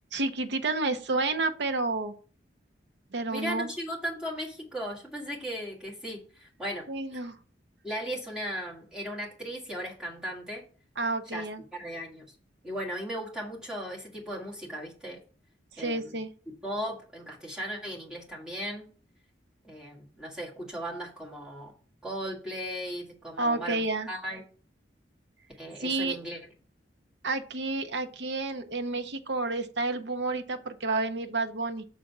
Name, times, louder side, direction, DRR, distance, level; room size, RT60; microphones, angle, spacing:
voice 1, 0.1-2.1 3.1-3.7 6.9-7.4 11.0-11.6 15.7-16.3 23.4-24.1 25.8-26.2 27.2-31.8, right 3 dB, 70° right, 8 dB, 0.7 m, -30 dB
voice 2, 3.3-6.8 7.1-7.2 7.8-10.6 11.3-11.5 11.7-12.3 12.6-15.2 15.8-16.2 16.6-18.9 19.6-21.7 22.0-24.4 25.6-26.4, equal, 5° right, -4 dB, 1.8 m, -37 dB
6.7 x 3.8 x 5.9 m, 0.41 s
head